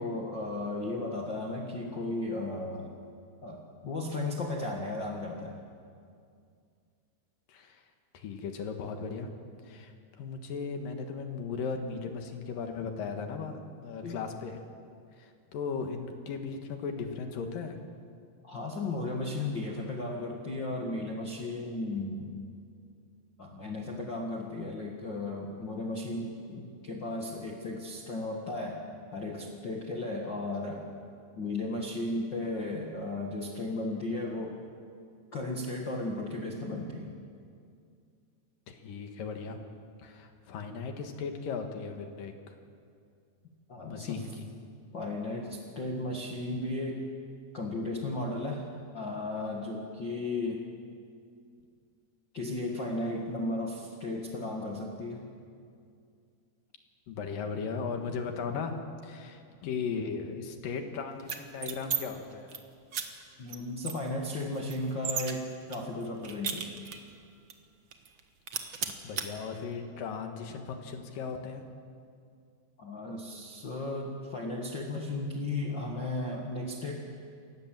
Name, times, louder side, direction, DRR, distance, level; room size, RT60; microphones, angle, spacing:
voice 1, 0.0-2.9 3.4-5.6 14.0-14.1 18.4-22.3 23.4-28.8 29.1-30.9 31.4-34.6 35.3-37.1 43.7-44.2 44.9-47.1 47.5-48.7 48.9-50.6 52.3-55.2 63.4-66.7 72.8-76.9, left 2 dB, 45° left, 0 dB, 1.6 m, -35 dB
voice 2, 7.5-7.8 8.1-9.3 9.6-14.6 15.2-17.8 38.7-39.6 40.0-42.5 43.9-44.4 57.1-58.8 59.0-62.6 68.6-71.6, left 5 dB, 65° left, 5 dB, 3.0 m, -37 dB
sound 1, 61.2-62.0 62.3-62.6 62.9-63.0 63.5-63.6 63.8-65.3 65.7-67.1 67.5-67.6 67.9-68.2 68.5-69.3, right 7 dB, 85° right, 1.0 m, -35 dB
28.5 x 16.5 x 7.5 m, 2.3 s
omnidirectional pair, 4.5 m